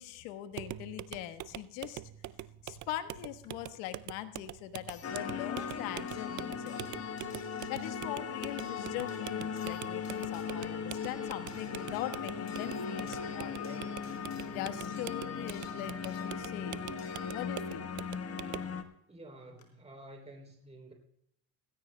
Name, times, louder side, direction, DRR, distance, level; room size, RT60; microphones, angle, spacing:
voice 1, 0.0-2.0 2.6-6.8 7.7-13.9 14.5-16.9 17.3-17.9, left 13 dB, 70° left, 9 dB, 1.4 m, -41 dB
sound 1, 0.5-18.8, right 14 dB, 40° right, 0.5 m, -45 dB
sound 2, 3.4-3.5 4.9-17.9 19.2-19.3 19.6-19.7, left 7 dB, 45° left, 3.5 m, -58 dB
sound 3, 5.0-18.8, left 6 dB, 30° left, 1.2 m, -38 dB
voice 2, 19.1-20.9, right 1 dB, 15° right, 2 dB, 3.2 m, -50 dB
18.0 x 16.5 x 2.2 m, 0.75 s
supercardioid pair, 90°, 50 cm